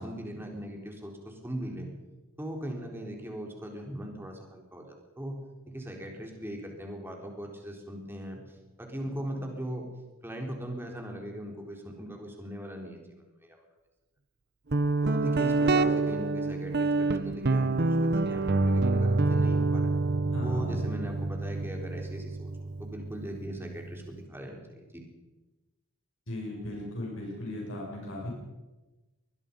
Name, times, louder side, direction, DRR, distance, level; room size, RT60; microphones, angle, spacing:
voice 1, 0.0-1.9 2.4-5.4 5.7-9.9 10.2-13.6 15.0-19.9 20.4-25.0, equal, 10° right, 1 dB, 3.9 m, -39 dB
Guitar, 14.7-24.2, right 3 dB, 50° right, 1.0 m, -27 dB
voice 2, 20.3-20.8 26.3-28.3, left 1 dB, 60° left, -1 dB, 6.5 m, -37 dB
23.5 x 20.5 x 5.4 m, 1.1 s
head